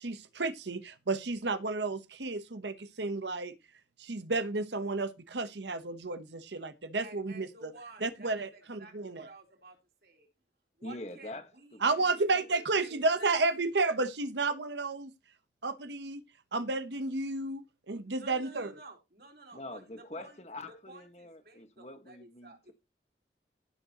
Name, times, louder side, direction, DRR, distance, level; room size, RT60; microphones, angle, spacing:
voice 1, 0.0-3.5 4.0-7.7 8.0-9.3 11.8-15.1 15.6-16.2 16.5-18.7, right 3 dB, 90° right, 1.0 m, -32 dB
voice 2, 7.0-10.3 10.8-13.3 18.1-19.8 20.2-20.4 20.9-22.7, right 2 dB, 60° right, 3.7 m, -52 dB
voice 3, 10.8-11.8 19.5-22.7, left 2 dB, 40° left, 1.6 m, -44 dB
17.0 x 6.4 x 3.0 m
head